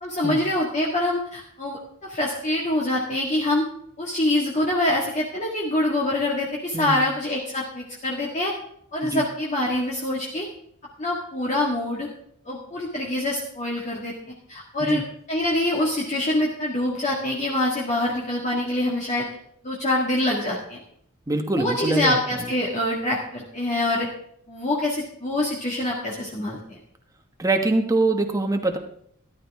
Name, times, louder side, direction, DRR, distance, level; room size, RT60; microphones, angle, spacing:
voice 1, 0.0-3.6 4.0-8.5 8.9-10.5 11.0-12.1 12.5-14.1 14.5-15.0 15.3-19.3 19.6-20.8 21.5-24.1 24.5-26.8, left 1 dB, 35° left, -4 dB, 1.9 m, -25 dB
voice 2, 21.3-22.2 27.4-28.8, right 2 dB, 15° right, 4 dB, 1.1 m, -23 dB
13.5 x 12.5 x 3.6 m, 0.68 s
head